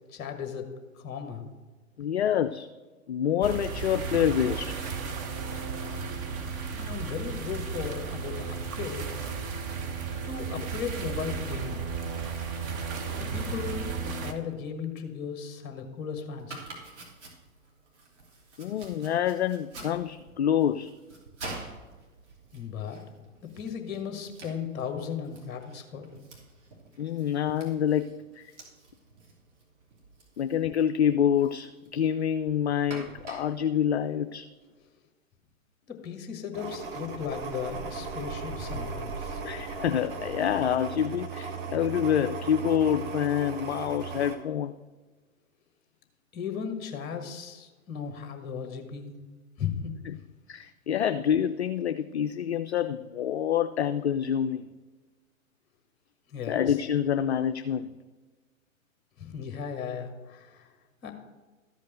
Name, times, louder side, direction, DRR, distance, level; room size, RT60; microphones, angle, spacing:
voice 1, 0.1-0.7 0.9-1.4 6.8-9.3 10.2-11.8 13.2-16.5 22.5-23.0 23.6-26.1 35.9-39.4 46.3-49.1 49.6-50.0 56.3-56.8 59.2-60.7 61.0-61.1, left 7 dB, 25° left, 5 dB, 1.5 m, -36 dB
voice 2, 2.0-2.7 3.1-4.8 10.6-10.7 18.6-20.9 27.0-28.1 28.4-28.5 30.4-34.5 39.4-44.7 50.5-54.7 56.5-57.9, left 9 dB, 55° left, 10 dB, 0.5 m, -27 dB
sound 1, 3.4-14.3, right 5 dB, 15° right, 0.5 m, -34 dB
Domestic sounds home sounds, 16.4-34.8, right 2 dB, 55° right, 3.1 m, -48 dB
sound 2, 36.5-44.4, right 5 dB, 40° right, 1.4 m, -37 dB
13.5 x 5.3 x 6.7 m, 1.3 s
figure-of-eight pair, 115°, 41 cm